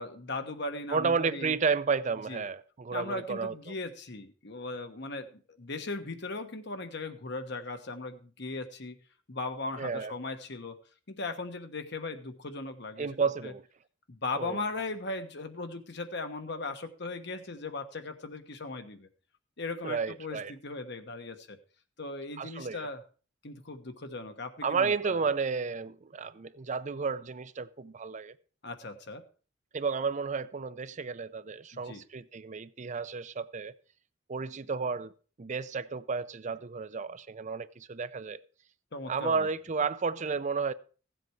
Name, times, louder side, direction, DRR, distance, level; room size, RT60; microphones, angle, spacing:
voice 1, 0.0-1.6 2.3-2.4 2.9-9.0 9.3-10.8 11.1-13.1 13.4-13.5 14.1-19.1 19.6-21.6 22.0-23.0 23.4-25.2 28.6-29.2 31.8-32.0 38.9-39.5, left 3 dB, 60° left, 1.3 m, -38 dB
voice 2, 0.9-3.7 9.8-10.1 13.0-13.6 14.4-14.6 19.8-20.5 22.4-22.9 24.6-28.3 29.7-33.7 34.3-35.1 35.4-38.4 39.1-40.7, right 5 dB, 40° right, 0.5 m, -32 dB
15.5 x 7.8 x 4.6 m
head